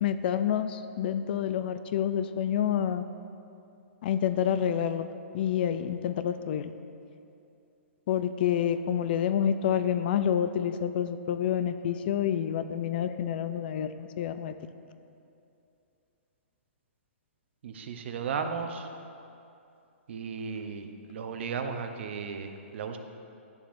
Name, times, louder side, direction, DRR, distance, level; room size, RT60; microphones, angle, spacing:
voice 1, 0.0-3.0 4.0-5.1 5.3-6.7 8.1-14.5, left 9 dB, 50° left, 11 dB, 0.4 m, -28 dB
voice 2, 17.6-18.9 20.1-23.0, right 5 dB, 60° right, 6 dB, 0.7 m, -35 dB
11.0 x 7.1 x 2.6 m, 2.6 s
hypercardioid pair, 150°, 7 cm